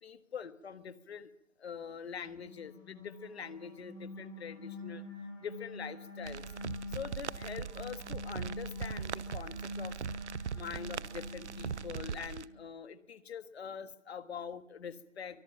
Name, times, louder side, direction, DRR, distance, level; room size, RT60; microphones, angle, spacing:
voice 1, 0.0-1.3 1.6-5.0 5.4-6.4 6.9-9.9 10.5-15.4, left 7 dB, 55° left, 12 dB, 1.7 m, -44 dB
sound 1, 2.1-12.6, left 1 dB, 5° right, 5.9 m, -45 dB
sound 2, 6.3-12.5, right 7 dB, 65° right, 0.9 m, -40 dB
23.5 x 19.5 x 5.8 m, 0.78 s
figure-of-eight pair, 150°, 38 cm